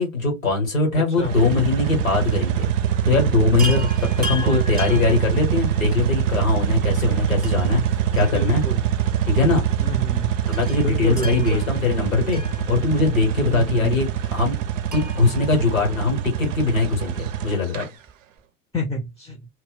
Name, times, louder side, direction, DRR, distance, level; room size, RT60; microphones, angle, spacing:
voice 1, 0.0-2.7 3.0-8.6 9.3-9.6 10.5-12.4 12.7-14.6 14.9-17.9, left 3 dB, 85° left, 1.1 m, -21 dB
voice 2, 0.9-1.4 4.4-5.1 8.1-8.8 9.8-10.3 10.8-11.6 13.5-14.0 18.7-19.4, equal, 10° left, 0.6 m, -29 dB
sound 1, 1.2-17.9, right 10 dB, 70° right, 0.5 m, -24 dB
Chime, 3.6-6.0 7.4-9.0 9.2-9.3 10.5-13.2 14.9-16.5 18.1-18.2 18.4-18.5, equal, 25° right, 0.8 m, -37 dB
Bass guitar, 11.7-18.0, left 13 dB, 55° left, 0.7 m, -40 dB
2.2 x 2.2 x 3.6 m
figure-of-eight pair, 65°, 39 cm